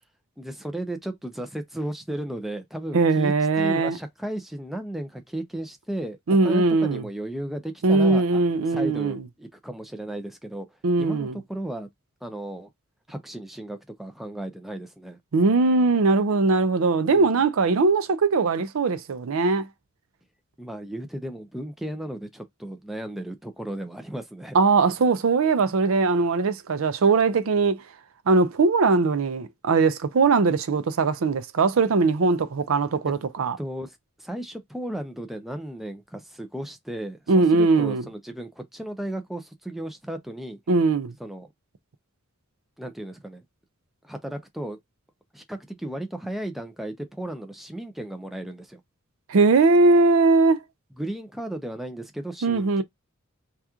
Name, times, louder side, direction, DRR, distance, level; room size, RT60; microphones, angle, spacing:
voice 1, 0.4-6.2 6.4-8.4 8.7-10.7 11.0-11.9 12.2-12.7 13.1-15.2 17.1-17.4 20.6-24.6 33.1-33.2 33.6-40.6 41.2-41.5 42.8-43.4 44.0-44.8 45.3-48.8 51.0-52.8, right 1 dB, ahead, 0.4 m, -35 dB
voice 2, 2.9-4.0 6.3-7.0 7.8-9.2 10.8-11.4 15.3-19.7 24.5-27.8 28.3-33.6 37.3-38.0 40.7-41.1 49.3-50.6 52.4-52.8, right 3 dB, 70° right, 0.5 m, -20 dB
2.9 x 2.4 x 3.5 m
head